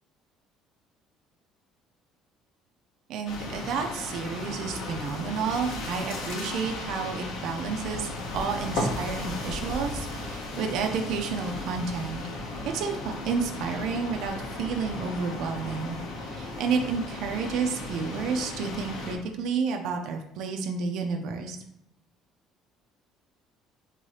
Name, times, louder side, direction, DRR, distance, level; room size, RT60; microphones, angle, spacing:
voice 1, 3.1-12.2 12.6-21.6, right 5 dB, 60° right, 3 dB, 0.5 m, -31 dB
sound 1, 3.2-19.1, left 2 dB, 65° left, 0.9 m, -35 dB
3.7 x 2.8 x 4.7 m, 0.80 s
cardioid pair, 155°, 0 cm